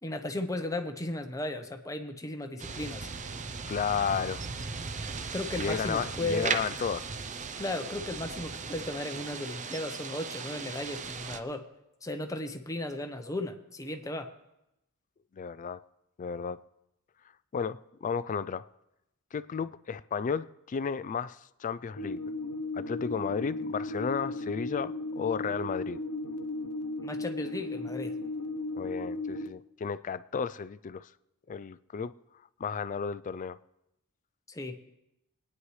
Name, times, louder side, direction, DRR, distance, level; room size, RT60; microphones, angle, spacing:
voice 1, 0.0-3.1 5.3-6.5 7.6-11.7 12.0-14.3 27.0-28.1 34.5-34.8, left 1 dB, 15° left, 0.9 m, -35 dB
sound 1, 2.6-11.4, right 5 dB, 35° right, 0.6 m, -37 dB
voice 2, 3.7-4.4 5.6-7.1 15.3-15.8 16.2-16.6 17.5-18.7 19.3-22.2 22.7-26.0 28.8-31.1 31.5-32.1 32.6-33.6, left 6 dB, 35° left, 0.3 m, -33 dB
sound 2, 22.0-29.5, left 2 dB, 75° left, 0.8 m, -35 dB
23.0 x 9.7 x 3.2 m
head